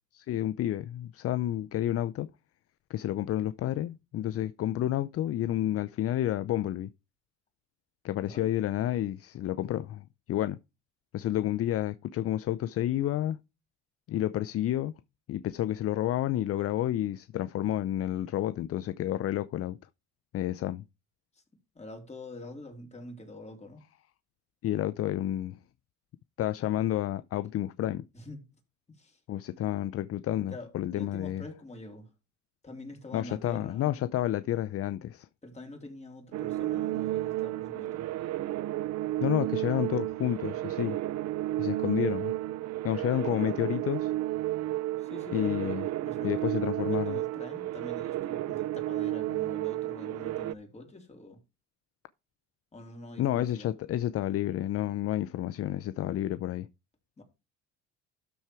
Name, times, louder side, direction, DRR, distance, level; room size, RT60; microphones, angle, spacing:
voice 1, 0.1-2.3 2.9-6.9 8.0-10.6 11.1-13.4 14.1-14.9 15.3-19.8 20.3-20.8 24.6-25.6 26.4-28.0 29.3-31.4 33.1-35.3 39.2-41.0 41.6-42.3 42.8-44.1 45.3-45.8 46.2-47.2 53.2-56.7, left 13 dB, 50° left, 0.5 m, -30 dB
voice 2, 21.8-23.8 28.1-28.4 28.9-29.2 30.5-32.1 32.6-33.9 35.4-38.0 45.0-46.6 46.9-51.4 52.7-53.7 57.2-57.3, left 1 dB, 20° left, 3.7 m, -45 dB
sound 1, 36.3-50.5, right 15 dB, 60° right, 0.6 m, -32 dB
12.5 x 4.5 x 4.8 m
cardioid pair, 95°, 30 cm